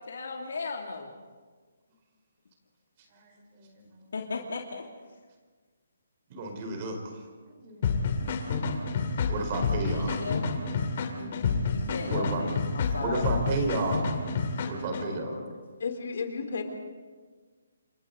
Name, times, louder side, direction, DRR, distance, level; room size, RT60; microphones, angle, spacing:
voice 1, 0.1-1.1 4.1-4.8 9.9-10.5 11.7-13.3 15.0-15.6, left 4 dB, 80° left, 0 dB, 2.8 m, -36 dB
voice 2, 3.1-4.1 6.3-7.2 7.6-8.4 9.3-10.2 10.4-10.6 11.1-12.4 12.9-14.1 14.7-15.4, right 3 dB, 30° right, 3 dB, 4.7 m, -33 dB
sound 1, 7.8-15.0, left 5 dB, 40° left, 2.9 m, -29 dB
voice 3, 15.8-16.6, left 5 dB, 60° left, 5 dB, 3.7 m, -32 dB
28.5 x 25.5 x 4.0 m, 1.5 s
hypercardioid pair, 165°, 0 cm